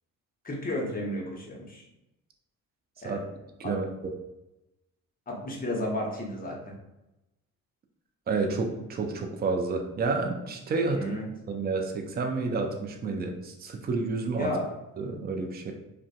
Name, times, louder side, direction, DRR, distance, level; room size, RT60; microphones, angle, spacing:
voice 1, 0.4-1.8 3.0-3.2 3.6-3.7 5.3-6.6 10.9-11.3 14.4-14.7, left 1 dB, 20° left, -2 dB, 0.8 m, -32 dB
voice 2, 3.6-4.1 8.3-11.0 11.5-14.5 15.0-15.7, right 3 dB, 25° right, 3 dB, 0.4 m, -30 dB
2.5 x 2.2 x 2.3 m, 0.93 s
hypercardioid pair, 50°, 44 cm